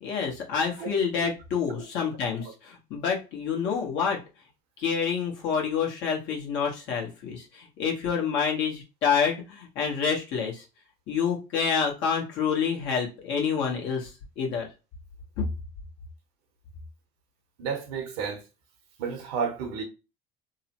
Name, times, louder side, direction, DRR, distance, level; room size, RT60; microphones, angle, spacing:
voice 1, 0.0-4.2 4.8-10.6 11.1-14.1 14.4-14.7 15.4-15.5, left 6 dB, 60° left, 1.2 m, -28 dB
voice 2, 17.6-18.4 19.0-19.8, right 6 dB, 75° right, 0.9 m, -32 dB
3.0 x 2.0 x 2.9 m
hypercardioid pair, 70°, 21 cm